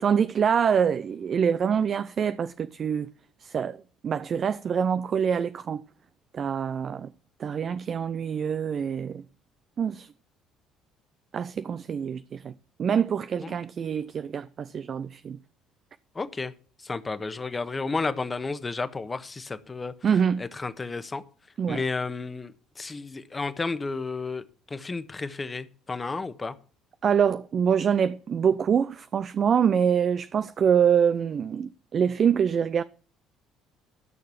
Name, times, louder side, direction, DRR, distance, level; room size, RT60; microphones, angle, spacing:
voice 1, 0.0-3.1 3.4-5.8 6.3-7.1 7.4-9.2 9.8-10.1 11.3-12.5 12.8-15.4 20.0-20.4 21.6-21.8 27.0-32.8, right 7 dB, 45° right, 0.5 m, -25 dB
voice 2, 16.1-16.5 16.8-19.9 20.4-21.2 21.7-26.5, left 4 dB, 25° left, 1.3 m, -32 dB
14.0 x 6.7 x 7.1 m
hypercardioid pair, 55°, 0 cm